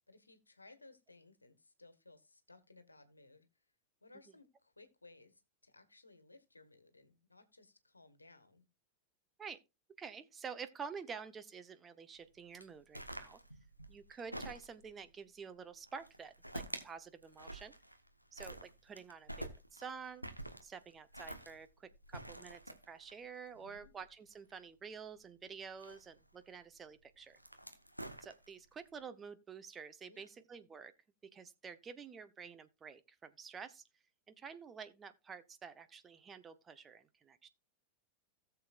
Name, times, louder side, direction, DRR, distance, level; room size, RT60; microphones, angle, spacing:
voice 1, 0.1-3.6 4.0-8.7 23.5-23.9 30.1-30.3, left 2 dB, 80° left, 1.5 m, -61 dB
voice 2, 10.0-13.4 13.9-17.7 18.3-20.3 20.6-22.6 22.9-27.4 28.2-30.9 31.3-33.8 34.3-37.5, right 6 dB, 20° right, 0.9 m, -49 dB
sound 1, 12.6-15.0 15.9-16.9 17.2-18.1 18.4-24.5 25.6-26.4 27.2-28.7, right 1 dB, 90° right, 1.2 m, -48 dB
17.5 x 6.9 x 2.5 m
figure-of-eight pair, 90°, 0 cm